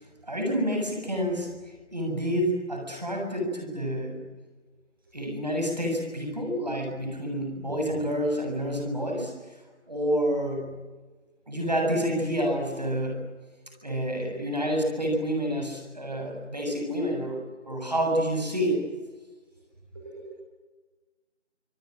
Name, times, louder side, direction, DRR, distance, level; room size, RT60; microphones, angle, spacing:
voice 1, 0.3-1.5 1.9-4.2 5.1-9.3 9.9-10.7 11.5-13.2 13.8-18.8, equal, 35° right, 2 dB, 7.4 m, -28 dB
voice 2, 13.7-14.6 16.1-16.2 19.9-20.3, right 3 dB, 20° right, -5 dB, 5.7 m, -45 dB
28.0 x 26.0 x 7.7 m, 1.2 s
figure-of-eight pair, 175°, 37 cm